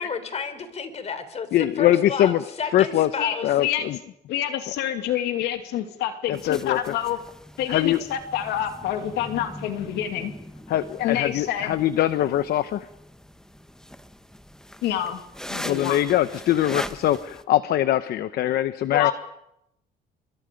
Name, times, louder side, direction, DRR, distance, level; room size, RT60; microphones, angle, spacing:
voice 1, 0.0-1.5 1.8-2.3 2.6-3.5, left 6 dB, 40° left, 11 dB, 3.7 m, -31 dB
voice 2, 1.5-2.4 2.7-3.1 3.4-4.0 6.3-6.8 7.7-8.0 10.7-12.9 15.6-19.1, left 12 dB, 70° left, 13 dB, 0.9 m, -22 dB
voice 3, 3.2-3.9 4.3-7.2 7.6-10.3 11.0-11.7 14.8-15.2 15.5-16.0 18.9-19.1, left 11 dB, 85° left, 6 dB, 2.5 m, -27 dB
sound 1, 6.3-17.4, left 1 dB, 5° left, 1.2 m, -41 dB
27.5 x 24.0 x 5.3 m, 0.80 s
cardioid pair, 110°, 17 cm